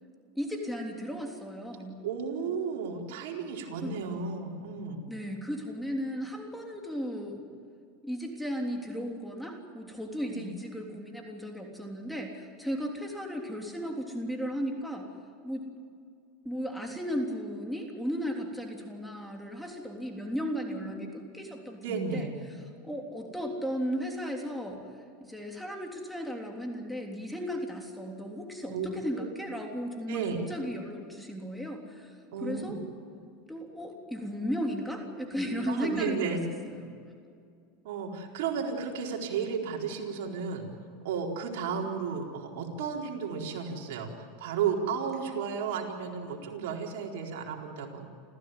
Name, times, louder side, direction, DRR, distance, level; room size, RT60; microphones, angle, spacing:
voice 1, 0.4-2.0 3.8-3.9 5.1-7.4 8.0-15.1 15.4-15.7 16.5-22.3 22.8-24.8 25.2-30.2 30.5-32.8 33.5-36.4 36.6-36.9, equal, ahead, 1 dB, 3.5 m, -35 dB
voice 2, 2.0-5.1 10.2-10.5 20.7-21.0 21.8-22.3 28.7-28.9 29.1-29.3 30.1-30.4 32.3-32.8 35.7-36.4 37.8-40.7 41.0-48.1, right 6 dB, 75° right, 0 dB, 4.3 m, -33 dB
29.0 x 15.0 x 9.3 m, 2.3 s
supercardioid pair, 115°, 0 cm